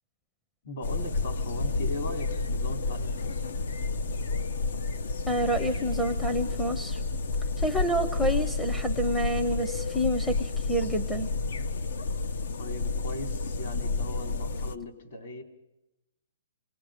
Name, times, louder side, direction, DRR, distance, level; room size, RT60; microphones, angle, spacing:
voice 1, 0.6-3.5 12.6-15.4, left 2 dB, 55° left, 4 dB, 3.6 m, -39 dB
sound 1, 0.8-14.7, left 3 dB, 70° left, 0.9 m, -30 dB
voice 2, 5.3-7.0 7.6-11.3, equal, 5° left, 2 dB, 0.7 m, -28 dB
28.0 x 19.5 x 5.1 m, 0.90 s
hypercardioid pair, 165°, 0 cm